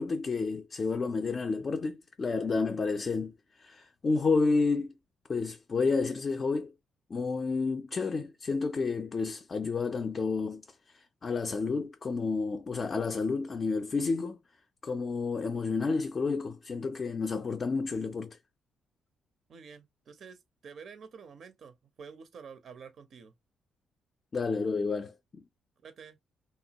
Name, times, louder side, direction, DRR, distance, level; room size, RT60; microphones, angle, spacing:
voice 1, 0.0-4.9 5.3-6.7 7.1-10.6 10.9-14.4 14.8-18.4 24.3-25.4, left 4 dB, 40° left, 0.3 m, -30 dB
voice 2, 19.5-23.3 25.8-26.2, right 6 dB, 55° right, 0.4 m, -49 dB
2.9 x 2.2 x 2.7 m
cardioid pair, 90°, 0 cm